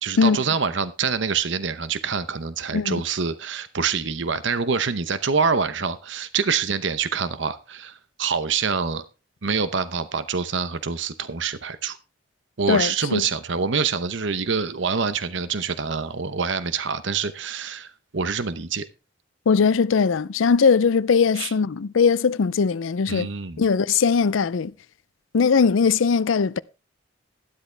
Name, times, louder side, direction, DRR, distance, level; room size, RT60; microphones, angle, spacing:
voice 1, 0.0-9.0 9.4-12.0 12.6-18.9 21.4-21.5 23.1-23.6, right 5 dB, 70° right, 0.8 m, -26 dB
voice 2, 12.7-13.2 19.5-23.3 23.6-24.7 25.3-26.6, left 5 dB, 80° left, 0.5 m, -20 dB
12.5 x 12.0 x 3.4 m
head